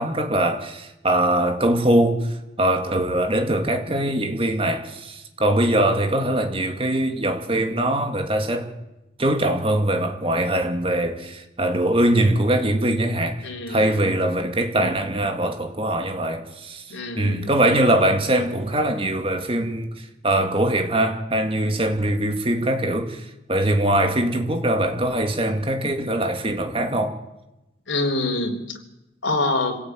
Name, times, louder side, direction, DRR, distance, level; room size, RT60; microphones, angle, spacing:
voice 1, 0.0-8.7 9.2-27.2, right 1 dB, 30° right, 2.3 m, -22 dB
voice 2, 13.4-14.2 16.9-17.5 27.9-28.8 29.2-29.8, left 2 dB, 90° left, 3.7 m, -26 dB
26.0 x 17.5 x 9.3 m
head